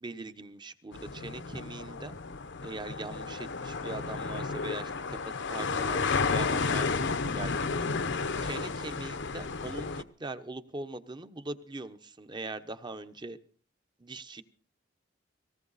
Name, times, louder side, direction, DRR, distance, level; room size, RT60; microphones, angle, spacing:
voice 1, 0.0-2.1 2.6-5.2 5.5-7.8 8.4-13.4 14.0-14.4, right 2 dB, 25° right, 10 dB, 0.9 m, -41 dB
sound 1, 0.9-10.0, left 4 dB, 65° left, 0.9 m, -32 dB
18.5 x 17.5 x 4.1 m, 0.43 s
head